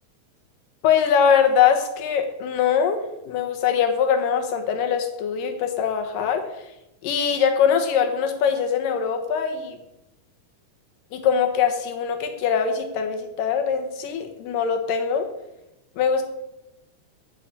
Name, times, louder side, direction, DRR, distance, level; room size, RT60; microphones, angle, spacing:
voice 1, 0.8-6.4 7.0-9.8 11.1-15.3 16.0-16.2, left 7 dB, 85° left, 5 dB, 2.9 m, -22 dB
8.8 x 6.8 x 8.4 m, 0.90 s
omnidirectional pair, 3.8 m